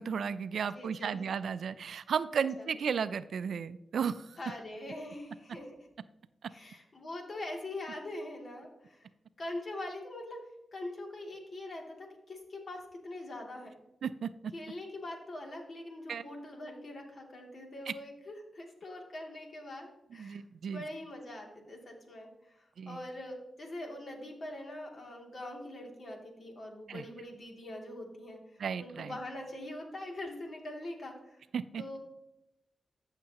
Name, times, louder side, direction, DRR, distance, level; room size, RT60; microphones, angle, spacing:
voice 1, 0.0-4.4 14.0-14.5 16.1-16.2 20.2-20.8 22.8-23.0 26.9-27.0 28.6-29.1 31.5-31.8, right 6 dB, 75° right, 15 dB, 0.4 m, -34 dB
voice 2, 0.7-1.3 2.4-2.6 4.4-5.8 6.5-9.1 9.4-10.4 10.7-13.8 14.5-20.4 20.7-28.4 28.8-31.4 31.8-32.0, left 1 dB, 55° left, 1 dB, 2.6 m, -43 dB
13.5 x 6.5 x 2.9 m, 0.87 s
cardioid pair, 45°, 0 cm